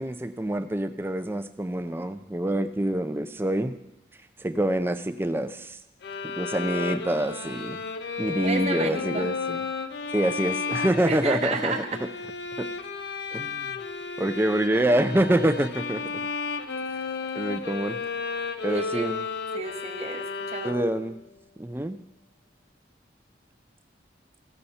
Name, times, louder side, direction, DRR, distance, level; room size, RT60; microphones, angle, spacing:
voice 1, 0.0-3.8 4.4-5.8 6.2-7.8 8.2-9.6 10.1-11.7 12.6-12.7 13.3-13.7 14.2-16.0 17.3-18.0 18.6-19.2 20.6-21.2 21.6-22.0, right 1 dB, 10° right, 10 dB, 0.4 m, -26 dB
sound 1, 6.0-21.1, left 4 dB, 60° left, 0.5 m, -33 dB
voice 2, 8.4-9.3 11.0-12.0 18.7-19.2 19.5-20.7, right 3 dB, 35° right, 4 dB, 0.8 m, -32 dB
15.0 x 6.6 x 4.2 m, 0.91 s
head